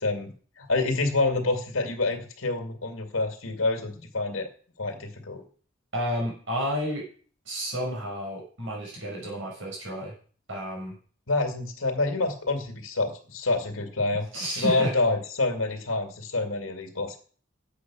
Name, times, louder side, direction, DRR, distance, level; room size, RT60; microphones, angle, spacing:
voice 1, 0.0-4.5 4.8-5.4 11.3-14.2 14.6-17.2, left 3 dB, 80° left, 5 dB, 2.4 m, -27 dB
voice 2, 5.9-7.1 7.5-10.1 10.5-11.0 14.3-14.9, equal, 70° right, -1 dB, 5.8 m, -31 dB
10.0 x 8.5 x 6.2 m, 0.42 s
head